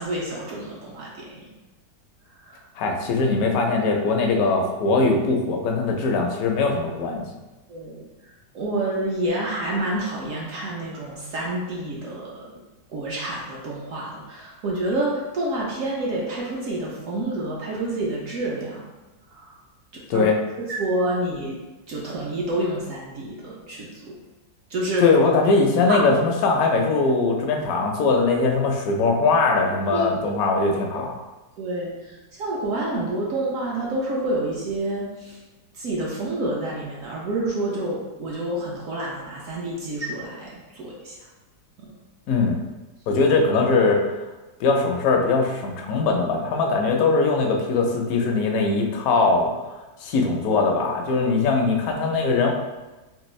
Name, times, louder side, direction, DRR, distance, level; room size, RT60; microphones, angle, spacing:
voice 1, 0.0-1.5 2.4-2.6 7.7-8.0 8.5-12.3 12.9-18.8 19.3-19.6 19.9-20.3 20.7-21.6 21.9-24.1 24.7-25.0 25.9-26.0 29.9-30.0 31.6-35.4 35.7-41.2 41.8-41.9, right 1 dB, 65° right, -4 dB, 0.8 m, -28 dB
voice 2, 2.8-7.3 20.1-20.4 25.0-31.1 42.3-42.6 43.1-44.0 44.6-49.5 50.0-52.5, left 3 dB, 70° left, 1 dB, 0.9 m, -21 dB
3.4 x 2.8 x 3.1 m, 1.1 s
omnidirectional pair, 1.9 m